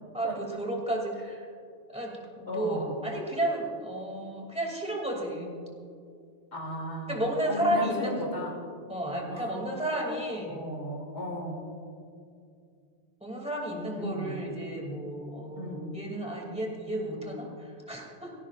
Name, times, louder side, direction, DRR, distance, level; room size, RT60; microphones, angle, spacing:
voice 1, 0.1-1.4 1.9-5.5 7.1-8.2 8.9-10.6 13.2-18.3, right 1 dB, 5° right, -1 dB, 2.5 m, -32 dB
voice 2, 2.5-3.0 6.5-8.6 9.3-9.6 10.5-11.7 14.0-14.4 15.5-16.0, left 1 dB, 70° left, -2 dB, 3.1 m, -36 dB
20.0 x 16.5 x 2.5 m, 2.4 s
omnidirectional pair, 1.2 m